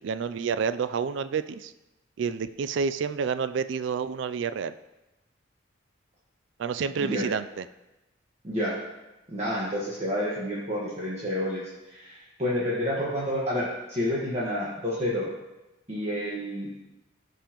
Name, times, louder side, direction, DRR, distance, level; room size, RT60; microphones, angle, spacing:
voice 1, 0.0-1.7 2.2-4.7 6.6-7.6, right 6 dB, 65° right, 13 dB, 0.3 m, -29 dB
voice 2, 8.4-8.8 9.3-15.3 15.9-16.7, equal, 35° right, -7 dB, 1.4 m, -29 dB
15.0 x 5.4 x 3.0 m, 1.0 s
head